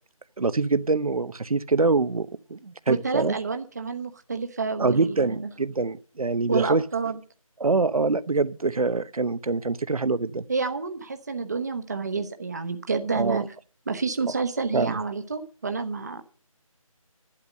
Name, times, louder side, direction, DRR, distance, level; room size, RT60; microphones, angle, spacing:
voice 1, 0.4-3.4 4.8-6.8 7.6-10.4 13.1-13.4 14.7-14.9, right 3 dB, 80° right, 0.9 m, -24 dB
voice 2, 2.9-5.5 6.5-7.2 10.5-13.4 13.9-16.4, right 4 dB, 30° right, 1.0 m, -29 dB
11.5 x 9.8 x 6.5 m
figure-of-eight pair, 170°, 18 cm